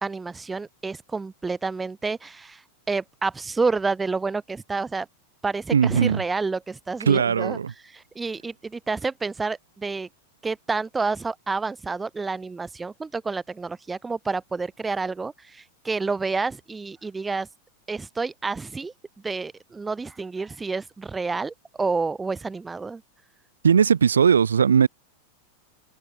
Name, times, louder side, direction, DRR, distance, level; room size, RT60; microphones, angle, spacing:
voice 1, 0.0-2.6 2.9-5.1 5.4-7.6 7.9-10.1 10.4-17.5 17.9-18.9 19.2-23.0, right 4 dB, 10° right, 1.3 m, -29 dB
voice 2, 5.7-6.2 7.1-7.7 23.6-24.9, right 7 dB, 70° right, 1.0 m, -19 dB
figure-of-eight pair, 90°, 0 cm